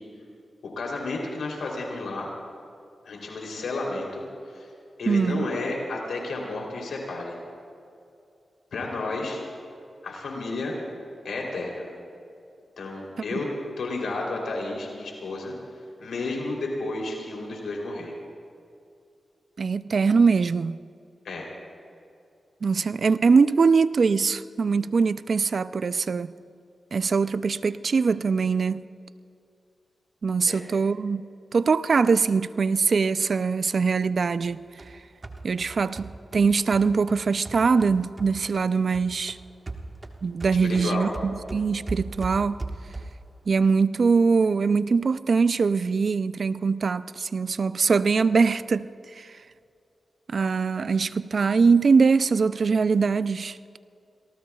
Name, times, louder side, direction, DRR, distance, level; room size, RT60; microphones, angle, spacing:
voice 1, 0.8-2.3 3.0-4.2 4.5-4.7 5.0-7.3 8.7-9.4 10.0-10.8 11.2-11.9 12.8-13.5 13.8-15.5 16.0-18.1 21.2-21.5 30.5-30.6 40.6-41.1, left 2 dB, 85° left, 3.3 m, -32 dB
voice 2, 5.1-5.5 19.6-20.8 22.6-26.3 26.9-28.8 30.2-31.2 31.5-34.6 35.4-39.4 40.2-42.6 43.5-48.9 49.2-49.3 50.3-53.8, right 5 dB, 65° right, 0.4 m, -22 dB
sound 1, 34.4-38.7 38.9-43.3, right 2 dB, 40° right, 1.5 m, -38 dB
29.5 x 19.0 x 2.4 m
cardioid pair, 50°, 0 cm